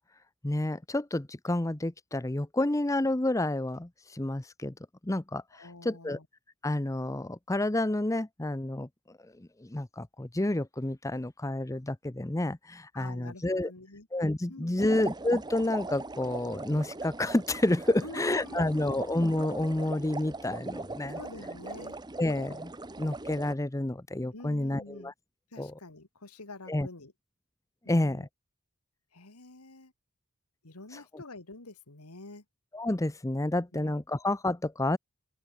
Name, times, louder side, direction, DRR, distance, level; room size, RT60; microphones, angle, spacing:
voice 1, 0.4-4.7 5.0-6.2 6.6-8.9 9.4-13.7 14.1-21.2 22.2-22.7 23.0-25.1 25.6-25.7 26.7-26.9 27.9-28.3 32.7-35.0, left 1 dB, 15° left, 0.6 m, -29 dB
voice 2, 5.5-6.3 12.9-14.1 14.5-15.1 18.0-19.0 21.1-22.0 24.3-25.1 25.5-27.1 27.8-28.3 29.1-29.9 30.6-32.4 33.7-33.9, left 2 dB, 90° left, 2.5 m, -47 dB
sound 1, 14.8-23.5, right 2 dB, 20° right, 0.9 m, -40 dB
open air
head